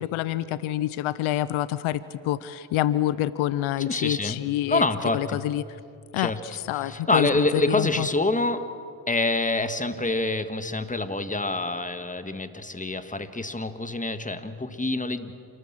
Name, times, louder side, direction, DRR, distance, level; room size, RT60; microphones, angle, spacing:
voice 1, 0.0-4.9 5.1-5.6 6.1-8.1, left 13 dB, 85° left, 17 dB, 0.7 m, -27 dB
voice 2, 3.9-4.4 4.7-5.4 6.2-6.4 6.8-8.7 9.1-15.3, left 2 dB, 15° left, 10 dB, 1.7 m, -26 dB
29.0 x 13.5 x 7.6 m, 2.4 s
supercardioid pair, 45°, 47 cm